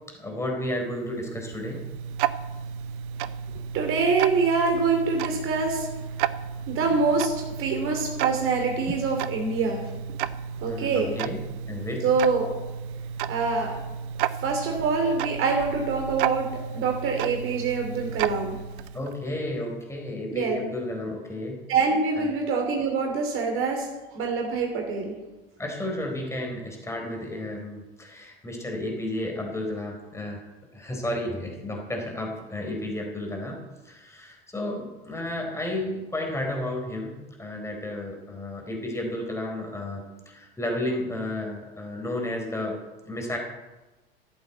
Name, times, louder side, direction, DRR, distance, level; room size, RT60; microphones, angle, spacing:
voice 1, 0.1-1.8 10.6-11.4 11.7-12.1 18.9-21.6 22.2-22.3 25.6-30.4 30.7-33.6 33.8-42.8 43.1-43.4, left 1 dB, 10° left, 1 dB, 3.9 m, -32 dB
Tick-tock, 0.9-19.2, right 8 dB, 60° right, 0.8 m, -33 dB
voice 2, 3.7-5.9 6.7-9.9 10.6-11.1 12.0-12.5 13.3-13.8 14.4-16.5 16.7-18.6 20.3-20.6 21.7-25.1, right 4 dB, 45° right, 1 dB, 3.0 m, -25 dB
15.0 x 8.4 x 8.0 m, 1.1 s
figure-of-eight pair, 80°, 30 cm